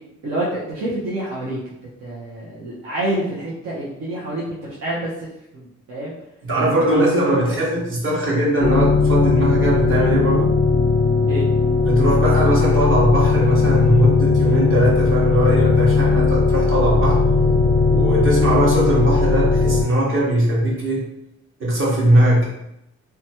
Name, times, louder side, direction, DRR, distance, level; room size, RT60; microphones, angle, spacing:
voice 1, 0.2-1.6 2.0-5.3 5.5-6.2 6.6-7.6 11.3-11.4, right 1 dB, 60° right, -7 dB, 0.8 m, -27 dB
voice 2, 6.4-10.6 11.8-17.2 17.9-21.0 21.6-22.5, right 1 dB, 45° right, -5 dB, 1.2 m, -20 dB
sound 1, 8.6-19.8, left 4 dB, 25° left, 0.5 m, -17 dB
2.9 x 2.2 x 2.8 m, 0.85 s
cardioid pair, 90°, 30 cm